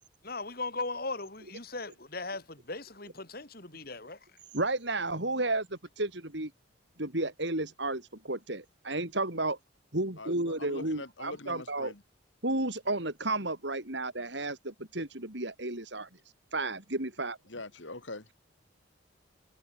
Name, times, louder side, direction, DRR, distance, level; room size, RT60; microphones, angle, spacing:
voice 1, 0.2-4.2, left 3 dB, 50° left, 4.1 m, -38 dB
voice 2, 4.5-6.5 7.0-9.6 9.9-11.9 12.4-16.1 16.5-17.4, right 2 dB, 60° right, 3.8 m, -32 dB
voice 3, 10.2-12.0 17.5-18.3, left 2 dB, 70° left, 2.9 m, -43 dB
head